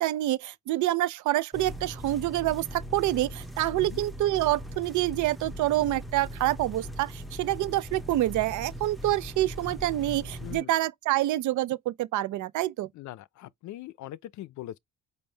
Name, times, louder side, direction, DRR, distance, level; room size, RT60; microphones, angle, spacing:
voice 1, 0.0-12.9, right 15 dB, 75° right, 0.5 m, -27 dB
sound 1, 1.5-10.6, equal, ahead, 0.6 m, -40 dB
voice 2, 10.4-10.7 12.9-14.8, left 14 dB, 70° left, 0.5 m, -41 dB
5.3 x 2.1 x 3.3 m
cardioid pair, 90°, 30 cm